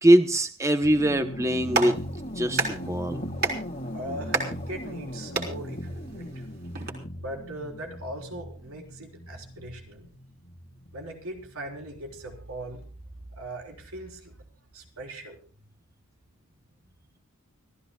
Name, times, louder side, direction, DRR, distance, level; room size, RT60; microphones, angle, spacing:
voice 1, 0.0-2.0 2.4-3.3, right 1 dB, 15° right, 7 dB, 0.9 m, -22 dB
sound 1, 0.8-12.3, equal, 40° left, 1.9 m, -38 dB
Clapping, 1.4-6.9, right 3 dB, 50° right, 4.1 m, -33 dB
voice 2, 3.9-6.5 7.2-10.1 10.9-12.8 13.3-14.4 14.7-15.4, right 1 dB, 80° right, 2 dB, 4.0 m, -40 dB
29.5 x 14.5 x 2.3 m, 0.37 s
head